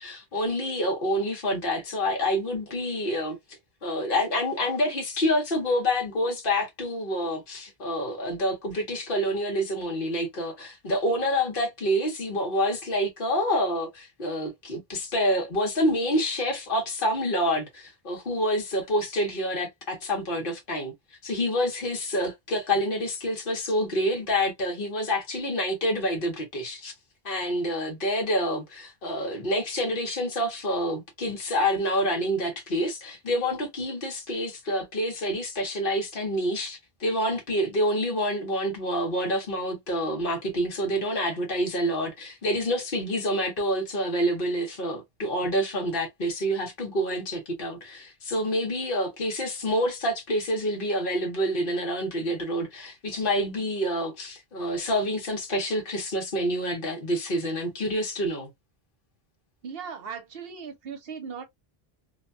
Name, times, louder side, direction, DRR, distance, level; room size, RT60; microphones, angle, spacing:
voice 1, 0.0-20.9 21.2-26.9 27.2-58.5, equal, 60° left, 1.2 m, -27 dB
voice 2, 59.6-61.5, right 6 dB, 70° right, 1.0 m, -38 dB
2.8 x 2.2 x 2.5 m
omnidirectional pair, 1.0 m